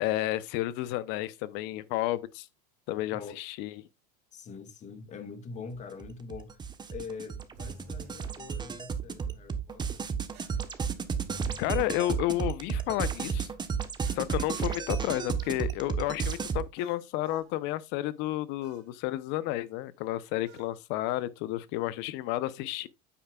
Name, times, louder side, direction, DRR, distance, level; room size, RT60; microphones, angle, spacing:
voice 1, 0.0-2.5 2.9-3.7 11.6-13.5 14.2-22.9, left 15 dB, 60° left, 0.9 m, -31 dB
voice 2, 4.3-6.6 6.9-10.0, left 5 dB, 35° left, 1.9 m, -43 dB
sound 1, 5.9-16.6, right 6 dB, 20° right, 1.2 m, -33 dB
sound 2, 7.5-8.2 10.3-11.9 14.0-15.7 16.8-17.5 18.6-18.9 20.4-20.7, right 2 dB, 60° right, 2.4 m, -52 dB
9.1 x 8.5 x 2.4 m
supercardioid pair, 100°, 20 cm